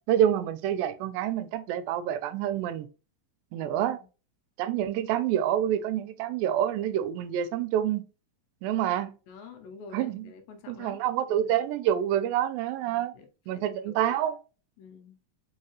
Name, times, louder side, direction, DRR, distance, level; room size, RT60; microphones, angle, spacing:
voice 1, 0.1-2.9 3.5-4.0 4.6-8.1 8.6-9.2 9.9-10.3 10.7-13.1 13.5-14.4, right 11 dB, 90° right, 2.3 m, -27 dB
voice 2, 3.5-4.1 9.3-11.0 11.3-11.6 12.8-14.2 14.8-15.2, left 5 dB, 80° left, 2.4 m, -48 dB
5.3 x 3.2 x 2.9 m
omnidirectional pair, 4.0 m